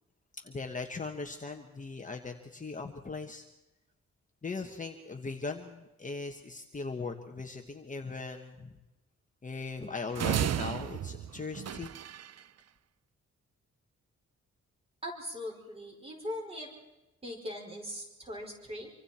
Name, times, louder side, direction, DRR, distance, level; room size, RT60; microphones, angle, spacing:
voice 1, 0.4-3.4 4.4-8.7 9.4-11.9, left 4 dB, 25° left, 3 dB, 1.3 m, -39 dB
sound 1, 10.2-12.4, right 9 dB, 60° right, 0.6 m, -33 dB
voice 2, 15.0-16.7 17.2-18.9, left 1 dB, 20° right, 0 dB, 5.1 m, -40 dB
26.0 x 25.5 x 4.4 m, 1.0 s
wide cardioid pair, 175°, 29 cm